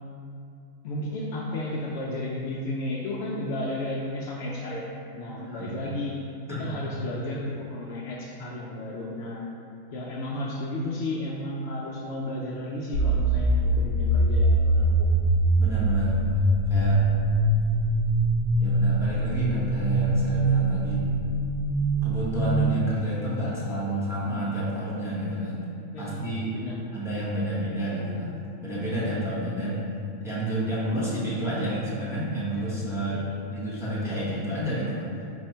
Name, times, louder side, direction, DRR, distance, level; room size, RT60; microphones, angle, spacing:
voice 1, 0.8-4.9 5.2-9.4 9.9-15.1 25.9-26.8 27.3-27.4 33.1-33.3, left 1 dB, 75° left, -3 dB, 0.6 m, -33 dB
voice 2, 5.5-5.8 6.5-6.7 15.6-16.3 16.7-17.0 18.6-21.1 22.0-25.6 26.0-26.5 26.9-29.8 30.2-33.2 33.5-35.1, right 1 dB, 5° right, -9 dB, 0.6 m, -30 dB
sound 1, 12.9-22.7, right 1 dB, 70° right, 1.1 m, -23 dB
4.3 x 2.8 x 4.4 m, 2.4 s
omnidirectional pair, 1.6 m